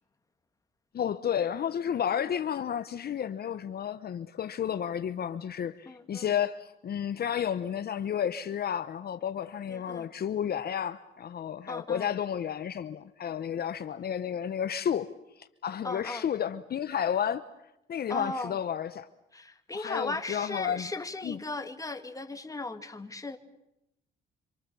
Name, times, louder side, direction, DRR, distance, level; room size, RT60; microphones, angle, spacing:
voice 1, 0.9-15.1 15.4-17.5 17.9-19.1 19.7-20.9 21.2-21.4, left 9 dB, 50° left, 0.9 m, -32 dB
voice 2, 5.9-6.3 9.7-10.1 11.7-12.1 15.8-16.2 18.1-18.6 19.3-23.4, left 2 dB, 15° left, 2.1 m, -37 dB
27.0 x 26.0 x 6.9 m
cardioid pair, 90°, 20 cm